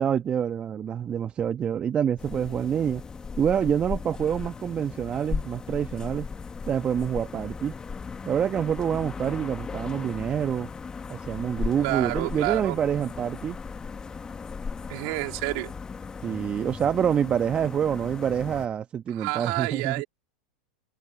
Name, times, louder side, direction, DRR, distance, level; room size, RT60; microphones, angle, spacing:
voice 1, 0.0-3.0 3.4-6.3 6.7-7.7 8.2-10.7 11.1-13.6 16.2-20.0, right 8 dB, 30° right, 1.4 m, -27 dB
sound 1, 2.2-18.7, left 5 dB, 20° left, 1.6 m, -37 dB
voice 2, 11.8-12.8 14.9-15.7 19.1-20.0, right 31 dB, 60° right, 3.3 m, -29 dB
hypercardioid pair, 95°, 4 cm